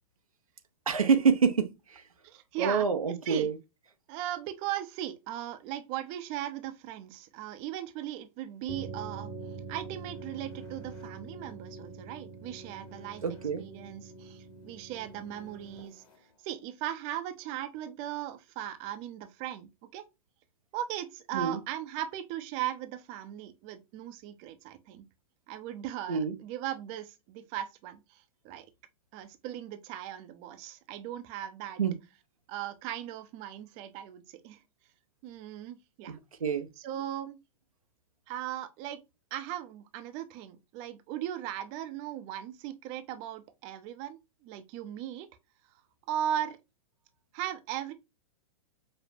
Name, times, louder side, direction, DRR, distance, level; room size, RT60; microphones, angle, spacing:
voice 1, 0.9-2.0 2.6-3.6 13.2-13.7 21.3-21.6 26.1-26.4 31.8-32.0 36.4-36.7, right 6 dB, 90° right, 0.7 m, -26 dB
voice 2, 2.2-2.9 3.3-3.5 4.1-9.3 9.7-13.2 13.6-16.0 16.4-20.1 20.7-25.0 25.5-28.7 29.1-31.8 32.5-34.6 35.2-36.2 36.8-37.4 38.3-39.0 39.3-45.3 46.1-46.6 47.3-47.9, right 12 dB, 40° right, 0.6 m, -38 dB
sound 1, 8.7-16.2, right 3 dB, 25° left, 1.3 m, -45 dB
5.2 x 2.1 x 2.6 m
hypercardioid pair, 110°, 18 cm